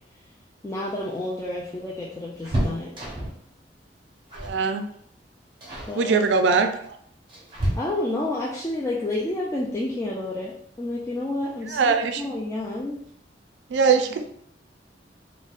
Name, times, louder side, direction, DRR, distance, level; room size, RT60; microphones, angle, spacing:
voice 1, 0.6-2.9 5.9-6.2 7.7-13.0, left 1 dB, 15° left, -5 dB, 0.3 m, -30 dB
sound 1, 0.8-3.5 4.3-4.6 4.9-5.2 5.6-6.0 6.8-8.3 10.0-10.1 10.5-10.6 11.8-12.2 12.5-12.6 12.9-13.1, right 1 dB, 30° right, 0.9 m, -31 dB
voice 2, 4.4-4.8 6.0-6.7 11.7-12.2 13.7-14.2, right 5 dB, 80° right, 7 dB, 0.4 m, -21 dB
3.9 x 2.1 x 2.4 m, 0.68 s
head